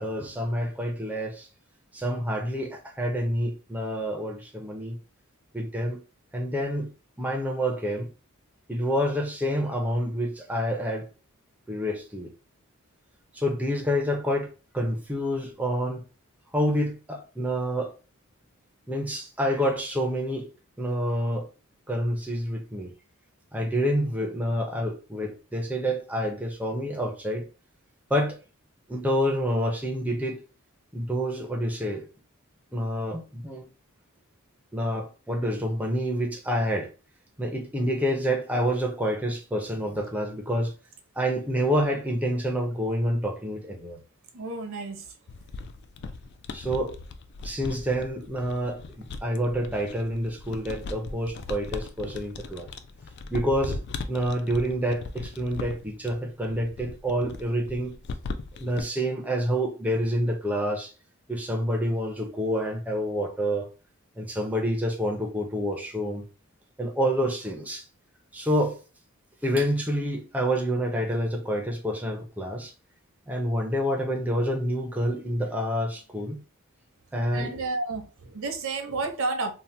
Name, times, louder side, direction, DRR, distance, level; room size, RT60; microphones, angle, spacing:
voice 1, 0.0-1.5 1.9-5.0 5.5-6.0 6.3-6.9 7.2-8.1 8.7-11.1 11.7-12.3 13.3-14.5 14.7-16.0 16.5-17.9 18.9-20.5 20.8-21.5 21.9-22.9 23.5-27.5 28.1-28.4 28.9-30.4 30.9-32.1 32.7-33.7 34.7-36.9 37.4-40.7 41.2-44.0 46.5-47.0 47.4-52.7 53.3-53.8 54.1-57.9 58.5-60.9 61.3-63.7 64.2-66.2 66.8-67.8 68.3-68.8 69.4-72.7 73.3-76.4 77.1-77.6, equal, 5° right, 0.5 m, -28 dB
voice 2, 44.3-45.1 77.3-79.5, right 3 dB, 65° right, 0.7 m, -31 dB
sound 1, 45.3-58.8, left 3 dB, 50° left, 0.3 m, -38 dB
2.7 x 2.1 x 3.2 m
head